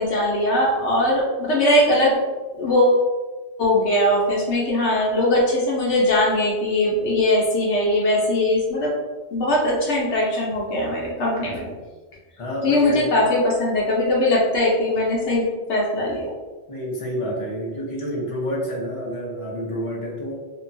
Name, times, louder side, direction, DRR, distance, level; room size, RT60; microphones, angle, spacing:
voice 1, 0.0-2.1 2.5-3.0 3.6-8.9 9.3-11.6 12.6-16.3, left 1 dB, 80° left, -4 dB, 1.0 m, -20 dB
voice 2, 12.4-13.1 16.7-20.4, equal, 40° left, -4 dB, 0.5 m, -28 dB
2.8 x 2.2 x 2.6 m, 1.3 s
omnidirectional pair, 1.2 m